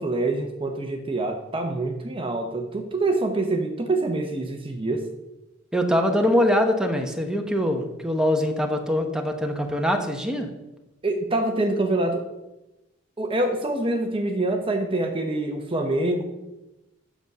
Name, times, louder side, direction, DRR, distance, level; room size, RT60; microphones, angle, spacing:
voice 1, 0.0-5.0 11.0-12.2 13.2-16.2, right 2 dB, 25° right, 4 dB, 0.8 m, -25 dB
voice 2, 5.7-10.5, left 1 dB, 5° right, 3 dB, 1.0 m, -23 dB
8.0 x 6.2 x 6.6 m, 0.97 s
head